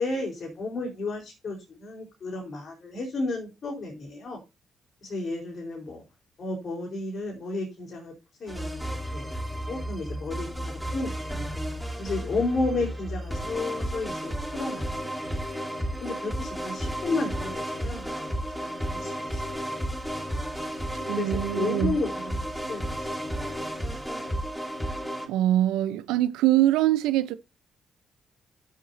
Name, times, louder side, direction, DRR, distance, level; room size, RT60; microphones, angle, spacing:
voice 1, 0.0-4.4 5.0-6.0 6.4-8.1 8.4-9.3 9.7-11.2 12.0-15.1 16.0-19.4 21.1-23.5 23.9-24.0 24.5-24.6, left 3 dB, 55° left, 4.5 m, -33 dB
sound 1, 8.5-25.3, equal, 5° right, 3.5 m, -33 dB
voice 2, 21.0-21.9 25.3-27.3, right 13 dB, 85° right, 0.8 m, -23 dB
13.0 x 7.6 x 2.8 m
hypercardioid pair, 50°, 0 cm